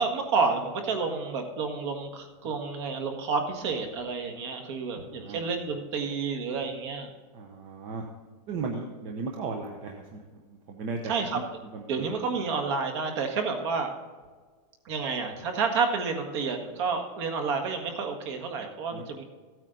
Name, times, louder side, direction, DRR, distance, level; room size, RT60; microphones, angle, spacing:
voice 1, 0.0-7.1 11.0-11.4 11.9-13.9 14.8-19.2, right 4 dB, 45° right, 5 dB, 1.7 m, -30 dB
voice 2, 5.0-5.4 7.3-8.1 8.5-11.4 11.7-12.1 18.9-19.0, right 4 dB, 25° right, 2 dB, 0.9 m, -36 dB
15.5 x 9.0 x 3.9 m, 1.4 s
supercardioid pair, 175°, 21 cm